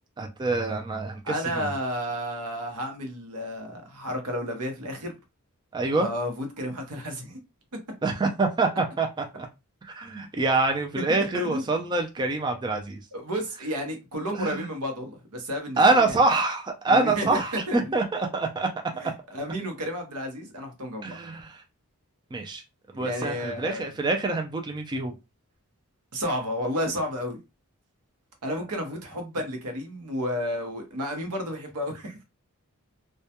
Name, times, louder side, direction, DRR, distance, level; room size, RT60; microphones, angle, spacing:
voice 1, 0.2-1.7 5.7-6.1 8.0-9.5 9.8-13.0 14.4-14.7 15.8-18.7 19.0-19.1 21.0-21.6 22.3-22.6 22.9-25.1, right 3 dB, 20° right, 0.3 m, -25 dB
voice 2, 1.2-5.1 5.9-7.4 7.7-7.8 11.0-11.1 11.3-11.7 13.1-16.1 16.9-17.4 17.7-17.9 19.0-21.1 23.0-23.9 26.1-27.4 28.4-32.2, equal, 90° right, 0.8 m, -32 dB
2.2 x 2.2 x 2.8 m
head